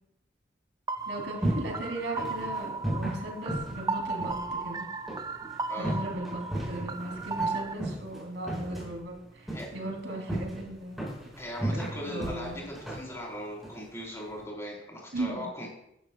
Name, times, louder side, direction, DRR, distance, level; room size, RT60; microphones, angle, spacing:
sound 1, 0.9-7.7, right 3 dB, 20° right, 0.4 m, -35 dB
sound 2, 1.0-14.4, right 1 dB, ahead, 4.6 m, -36 dB
voice 1, 1.1-4.9 5.8-11.1 12.0-12.6 15.1-15.5, right 1 dB, 80° right, 0 dB, 3.1 m, -37 dB
voice 2, 11.4-15.7, equal, 15° left, -3 dB, 4.0 m, -39 dB
14.0 x 11.5 x 2.3 m, 0.78 s
head